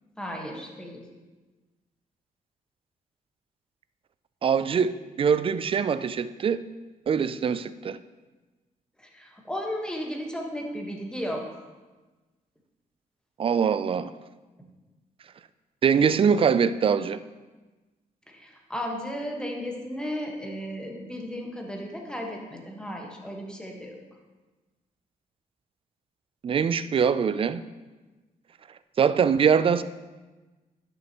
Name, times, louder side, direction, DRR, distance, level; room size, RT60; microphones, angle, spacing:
voice 1, 0.2-1.0 9.1-11.4 18.3-24.0, equal, 5° left, 1 dB, 1.4 m, -34 dB
voice 2, 4.4-6.6 7.1-8.0 13.4-14.1 15.8-17.2 26.4-27.6 29.0-29.8, right 7 dB, 40° right, 13 dB, 0.4 m, -23 dB
10.5 x 6.4 x 3.0 m, 1.2 s
cardioid pair, 90°, 15 cm